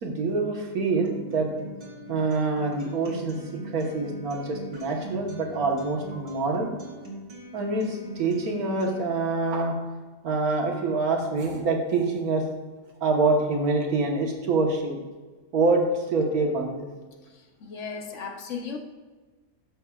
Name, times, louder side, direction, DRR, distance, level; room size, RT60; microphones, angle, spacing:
voice 1, 0.0-1.5 2.1-3.4 3.6-7.2 7.5-9.8 10.2-12.4 13.0-15.0 15.5-16.9, right 3 dB, 75° right, 1 dB, 1.8 m, -26 dB
Acoustic guitar, 1.0-9.0, right 2 dB, 30° right, 1.7 m, -41 dB
voice 2, 17.3-18.8, left 5 dB, 60° left, 4 dB, 1.1 m, -36 dB
12.5 x 6.6 x 2.4 m, 1.3 s
omnidirectional pair, 1.6 m